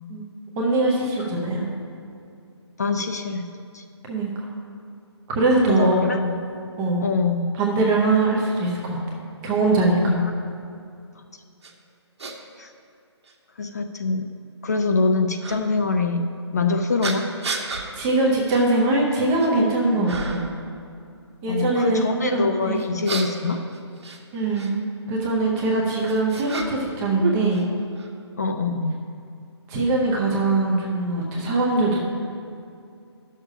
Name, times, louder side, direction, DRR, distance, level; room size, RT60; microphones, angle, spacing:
voice 1, 0.6-1.7 4.1-4.3 5.3-6.1 6.8-7.0 7.6-9.0 9.4-10.1 17.6-20.5 21.4-22.9 24.3-24.8 25.1-27.7 29.7-32.0, right 2 dB, 10° right, -2 dB, 0.6 m, -22 dB
voice 2, 2.8-3.5 3.7-3.8 5.7-6.4 7.0-7.5 10.1-10.3 12.6-12.7 13.6-14.3 14.6-16.3 16.5-17.3 19.9-20.1 21.5-23.6 28.4-29.0, left 3 dB, 35° left, 6 dB, 0.4 m, -24 dB
sound 1, 11.6-11.7 12.2-12.3 13.2-13.3 15.4-15.6 17.0-17.9 18.5-18.6 19.1-19.6 20.1-20.5 22.8-24.7 25.7-27.0 27.2-28.1, right 3 dB, 70° right, 1.3 m, -32 dB
11.0 x 6.5 x 4.9 m, 2.4 s
hypercardioid pair, 175°, 15 cm